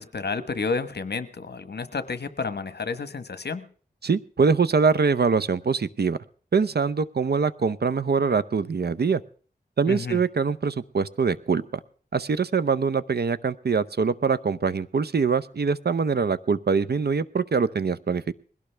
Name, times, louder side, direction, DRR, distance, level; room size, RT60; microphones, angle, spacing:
voice 1, 0.0-3.7 9.9-10.2, left 4 dB, 75° left, 12 dB, 1.1 m, -30 dB
voice 2, 4.0-6.2 6.5-9.2 9.8-11.6 12.1-18.3, right 5 dB, 70° right, 15 dB, 0.7 m, -23 dB
21.0 x 17.0 x 3.4 m, 0.44 s
wide cardioid pair, 60°, 17 cm